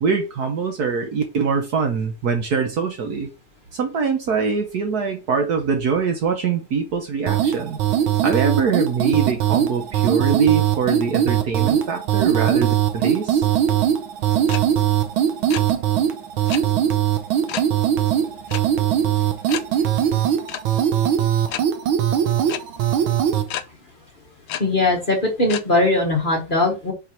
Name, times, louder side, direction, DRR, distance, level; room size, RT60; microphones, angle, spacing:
voice 1, 0.0-3.3 3.7-7.8 8.2-13.5, right 5 dB, 60° right, 1.2 m, -23 dB
sound 1, 7.3-23.5, right 10 dB, 80° right, 1.6 m, -20 dB
sound 2, 14.5-14.6 14.9-15.1 15.3-15.6 16.5-16.6 17.5-17.7 18.5-18.6 19.0-19.1 19.5-19.6 20.5-20.6 21.5-21.6 22.5-22.6 23.5-23.6 24.5-24.6 25.5-25.6, left 12 dB, 75° left, 1.3 m, -29 dB
voice 2, 24.6-26.9, left 2 dB, 30° left, 1.1 m, -20 dB
4.8 x 4.5 x 4.4 m
omnidirectional pair, 2.2 m